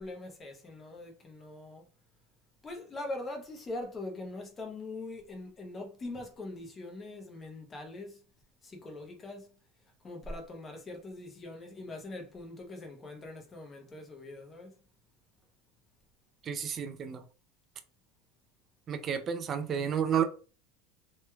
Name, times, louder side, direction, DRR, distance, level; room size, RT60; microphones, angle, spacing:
voice 1, 0.0-1.9 2.6-8.2 8.6-9.5 10.0-14.8, left 2 dB, 20° left, 0.8 m, -42 dB
voice 2, 16.4-17.2 18.9-20.2, right 8 dB, 30° right, 0.3 m, -31 dB
3.1 x 3.0 x 2.2 m
supercardioid pair, 145°, 0 cm